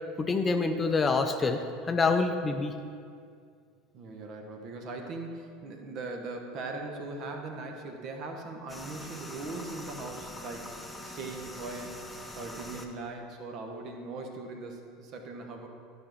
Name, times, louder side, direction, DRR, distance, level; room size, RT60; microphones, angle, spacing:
voice 1, 0.2-2.8, left 4 dB, 25° left, 6 dB, 0.6 m, -26 dB
voice 2, 3.9-12.0 12.3-15.7, right 3 dB, 45° right, 3 dB, 1.1 m, -40 dB
sound 1, 8.7-12.9, left 1 dB, 5° left, 0.9 m, -43 dB
11.5 x 5.3 x 4.6 m, 2.2 s
figure-of-eight pair, 75°, 0 cm